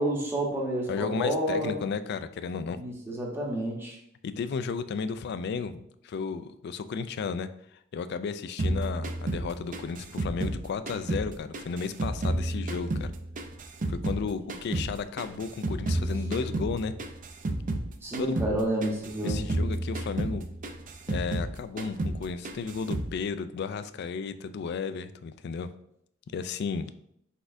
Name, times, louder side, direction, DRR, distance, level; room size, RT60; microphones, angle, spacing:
voice 1, 0.0-1.7 2.7-4.0 18.0-19.4, right 1 dB, 15° right, -3 dB, 0.9 m, -29 dB
voice 2, 0.9-2.8 4.2-13.1 13.9-16.9 18.2-18.3 19.2-20.5 21.1-25.7 26.3-26.9, left 5 dB, 60° left, 12 dB, 0.3 m, -33 dB
sound 1, 8.6-11.3 11.5-14.2 14.5-17.9 18.1-18.5 18.8-21.5 21.8-22.2 22.4-23.1, right 1 dB, 40° right, 0.4 m, -31 dB
4.6 x 4.1 x 2.6 m, 0.73 s
head